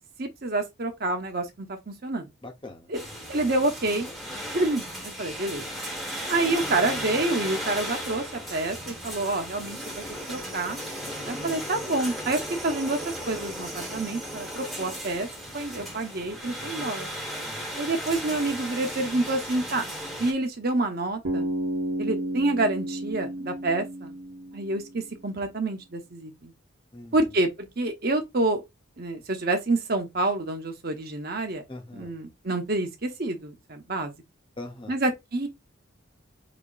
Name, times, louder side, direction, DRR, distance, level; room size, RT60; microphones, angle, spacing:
voice 1, 0.2-2.3 2.9-3.0 3.3-4.1 4.5-5.6 6.3-10.0 10.3-10.8 11.3-13.0 13.3-15.3 15.5-17.1 17.8-19.8 20.2-21.5 22.0-24.1 24.5-26.5 27.1-28.6 29.0-31.6 32.0-34.1 34.9-35.5, right 2 dB, 45° right, 0.9 m, -28 dB
voice 2, 2.4-2.9 17.4-17.8 26.9-27.3 31.7-32.2 34.6-35.0, left 2 dB, 25° left, 0.7 m, -42 dB
sound 1, 2.9-20.3, equal, ahead, 1.0 m, -35 dB
Bass guitar, 21.2-25.2, right 1 dB, 85° right, 1.0 m, -32 dB
5.0 x 2.8 x 2.4 m
head